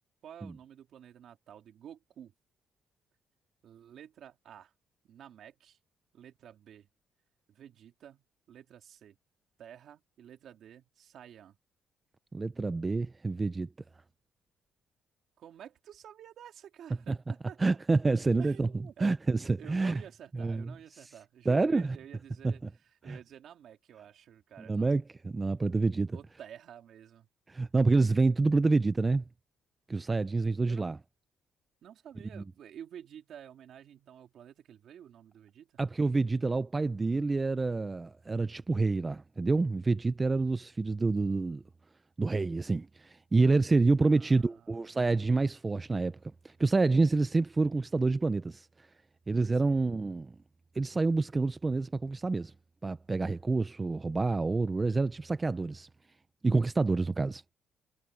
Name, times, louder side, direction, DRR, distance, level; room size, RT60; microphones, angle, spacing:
voice 1, 0.2-2.3 3.6-4.7 5.0-5.8 6.1-6.9 7.5-9.2 9.6-11.6 15.4-17.6 18.4-19.2 19.6-24.9 26.1-27.3 30.7-30.9 31.8-35.8 44.0-44.9 49.5-49.8, right 9 dB, 60° right, 2.7 m, -51 dB
voice 2, 12.3-13.7 17.1-17.2 17.6-18.7 19.0-20.0 20.3-20.7 21.5-22.0 22.4-22.5 23.1-23.2 24.6-26.2 27.5-29.2 29.9-31.0 32.4-32.5 35.8-41.6 42.2-46.2 46.4-48.7 49.3-50.4 50.8-52.5 52.8-55.9 56.4-57.4, right 3 dB, 20° right, 0.5 m, -28 dB
cardioid pair, 135°, 0 cm